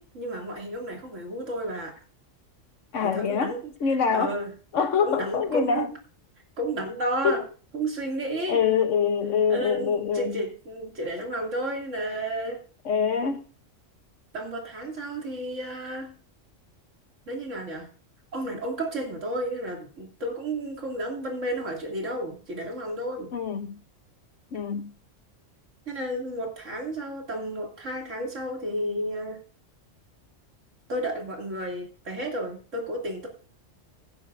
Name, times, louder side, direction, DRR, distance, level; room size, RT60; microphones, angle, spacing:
voice 1, 0.0-1.9 3.1-3.7 4.1-4.5 5.0-5.9 6.6-7.4 7.7-8.6 9.5-12.6 14.3-16.1 17.3-17.9 18.3-23.3 25.9-29.4 30.9-33.3, right 1 dB, 75° right, 3.0 m, -32 dB
voice 2, 2.9-4.3 4.7-5.9 7.2-7.4 8.5-10.4 12.8-13.4 23.3-23.8 24.5-24.9, left 6 dB, 75° left, 1.4 m, -25 dB
16.0 x 9.2 x 2.6 m
omnidirectional pair, 1.3 m